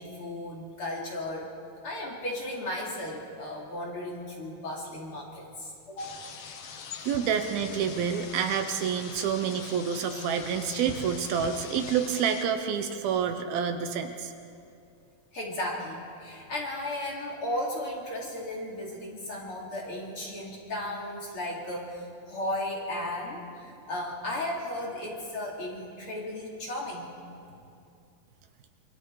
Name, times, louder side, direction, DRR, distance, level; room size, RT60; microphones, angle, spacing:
voice 1, 0.0-1.5 1.8-6.1 15.3-27.1, left 1 dB, 35° left, -3 dB, 3.2 m, -35 dB
sound 1, 6.0-12.5, left 6 dB, 80° left, 1.3 m, -42 dB
voice 2, 7.0-14.3, right 7 dB, 75° right, 7 dB, 2.7 m, -28 dB
26.5 x 24.5 x 4.8 m, 2.5 s
omnidirectional pair, 4.5 m